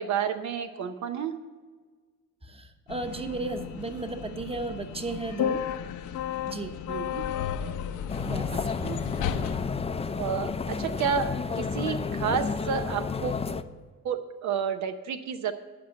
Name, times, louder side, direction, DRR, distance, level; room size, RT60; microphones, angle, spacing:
voice 1, 0.0-1.3 6.9-7.3 8.5-9.0 10.2-13.5 14.0-15.5, right 7 dB, 70° right, 8 dB, 0.7 m, -30 dB
voice 2, 2.4-5.6 6.4-6.8 8.2-8.6, right 3 dB, 20° right, 7 dB, 1.0 m, -34 dB
sound 1, 2.9-10.7, left 9 dB, 85° left, 0.8 m, -34 dB
sound 2, 8.1-13.6, left 5 dB, 20° left, 0.5 m, -31 dB
11.0 x 5.2 x 8.0 m, 1.5 s
cardioid pair, 90°, 30 cm